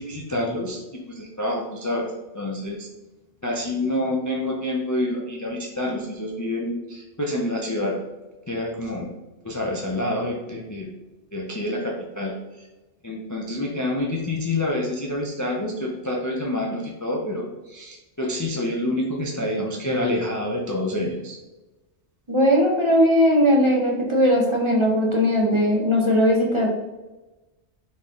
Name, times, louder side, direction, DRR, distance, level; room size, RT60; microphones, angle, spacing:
voice 1, 0.0-2.1 2.3-2.9 3.4-7.9 8.5-9.1 9.4-10.9 11.3-12.7 13.0-21.4, left 1 dB, 25° left, -1 dB, 0.4 m, -27 dB
voice 2, 22.3-26.7, equal, 30° right, -1 dB, 0.7 m, -19 dB
4.2 x 3.5 x 3.6 m, 1.1 s
omnidirectional pair, 1.2 m